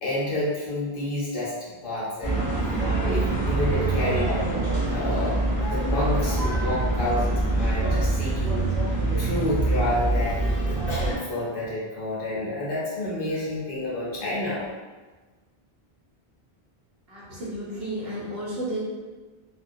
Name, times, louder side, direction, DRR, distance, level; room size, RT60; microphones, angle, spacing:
voice 1, 0.0-4.4 4.9-8.7 9.2-14.6, left 1 dB, 60° left, -7 dB, 0.9 m, -29 dB
sound 1, 2.2-11.2, right 2 dB, 5° left, 0.9 m, -25 dB
voice 2, 17.1-18.8, right 1 dB, 65° right, -7 dB, 1.0 m, -32 dB
2.4 x 2.2 x 2.6 m, 1.3 s
omnidirectional pair, 1.1 m